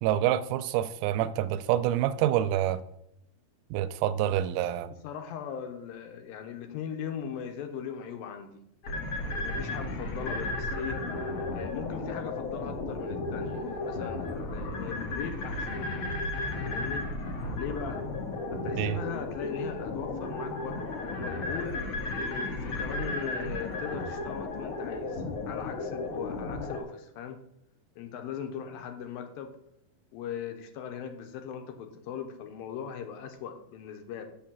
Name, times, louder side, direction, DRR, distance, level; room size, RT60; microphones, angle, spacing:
voice 1, 0.0-2.8 3.7-4.9 18.7-19.0, right 12 dB, 80° right, 13 dB, 2.3 m, -27 dB
voice 2, 5.0-8.6 9.2-11.0 11.5-15.8 16.6-17.1 17.6-18.0 18.5-20.8 21.1-21.8 22.3-27.4 28.0-29.5 30.1-34.2, left 8 dB, 80° left, 6 dB, 2.5 m, -39 dB
sound 1, 8.8-26.8, left 2 dB, 55° left, 1.7 m, -34 dB
7.0 x 5.6 x 7.3 m, 0.75 s
omnidirectional pair, 4.4 m